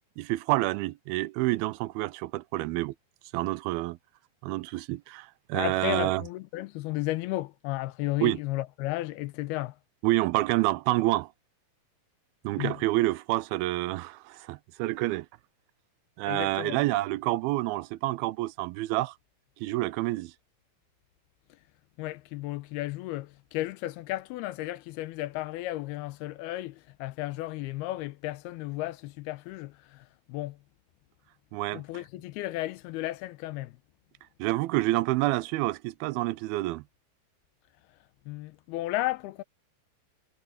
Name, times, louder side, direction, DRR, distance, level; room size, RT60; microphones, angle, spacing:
voice 1, 0.2-3.0 3.3-4.0 4.4-6.2 8.2-8.4 10.0-11.3 12.4-15.3 16.2-19.1 19.6-20.3 31.5-31.8 34.4-36.8, right 18 dB, 80° right, 2.4 m, -28 dB
voice 2, 5.5-9.7 12.6-12.8 16.3-16.8 22.0-30.6 31.7-33.8 38.3-39.4, left 17 dB, 90° left, 2.7 m, -34 dB
omnidirectional pair, 4.5 m